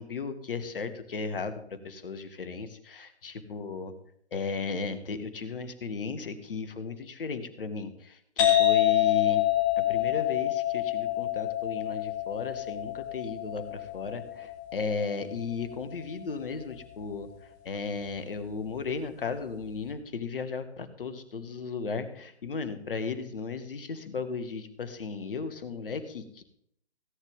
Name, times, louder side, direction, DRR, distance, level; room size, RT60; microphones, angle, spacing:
voice 1, 0.0-1.5 1.8-3.9 4.3-7.9 8.4-9.4 9.8-17.3 17.6-26.4, left 4 dB, 55° left, 11 dB, 1.8 m, -35 dB
sound 1, 8.4-15.8, left 13 dB, 20° left, 3.3 m, -27 dB
18.0 x 9.8 x 3.7 m, 0.68 s
figure-of-eight pair, 135°, 33 cm